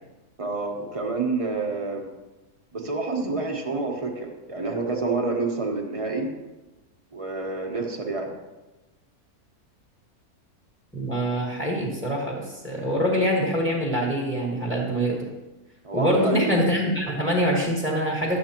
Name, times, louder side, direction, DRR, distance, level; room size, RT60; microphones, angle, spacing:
voice 1, 0.4-2.1 2.7-6.3 7.1-8.3 15.8-16.6, right 3 dB, 25° right, 1 dB, 1.0 m, -28 dB
voice 2, 10.9-15.3 15.9-18.4, equal, ahead, -3 dB, 1.3 m, -24 dB
11.5 x 7.6 x 2.9 m, 1.1 s
omnidirectional pair, 1.6 m